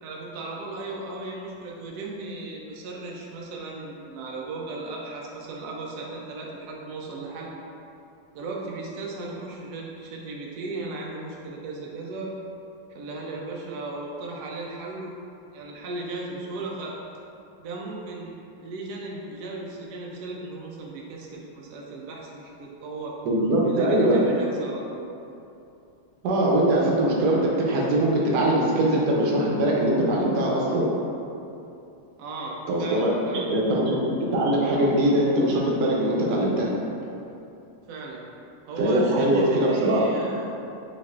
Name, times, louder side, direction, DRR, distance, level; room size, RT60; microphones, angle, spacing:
voice 1, 0.0-7.5 8.3-12.3 12.9-15.2 15.5-17.0 17.6-18.3 18.6-23.2 23.6-25.1 32.2-33.5 37.9-38.2 38.7-40.6, right 2 dB, 85° right, -2 dB, 0.8 m, -36 dB
voice 2, 23.3-24.2 26.2-30.9 32.7-33.1 33.5-36.7 38.8-40.3, right 1 dB, 65° right, -3 dB, 1.1 m, -22 dB
7.2 x 2.4 x 2.4 m, 2.8 s
omnidirectional pair, 2.3 m